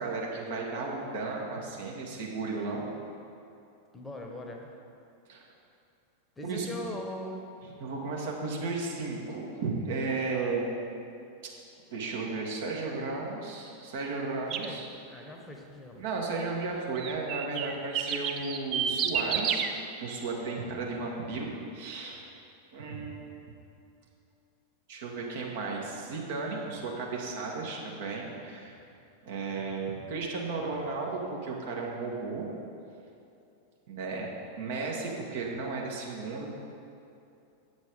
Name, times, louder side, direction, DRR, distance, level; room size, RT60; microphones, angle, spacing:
voice 1, 0.0-2.9 5.3-5.5 6.4-6.7 7.8-10.6 11.9-14.9 16.0-22.3 22.7-23.4 24.9-28.8 29.2-32.4 33.9-34.3 34.6-36.5, right 3 dB, 55° right, -1 dB, 1.5 m, -34 dB
voice 2, 3.9-4.7 6.4-7.5 10.3-10.5 14.6-14.8 15.1-16.0 18.0-18.2, left 1 dB, 10° left, 2 dB, 1.1 m, -41 dB
sound 1, 14.5-14.7 17.0-19.7, right 8 dB, 35° right, 0.5 m, -30 dB
8.2 x 7.1 x 5.2 m, 2.7 s
figure-of-eight pair, 90°, 0 cm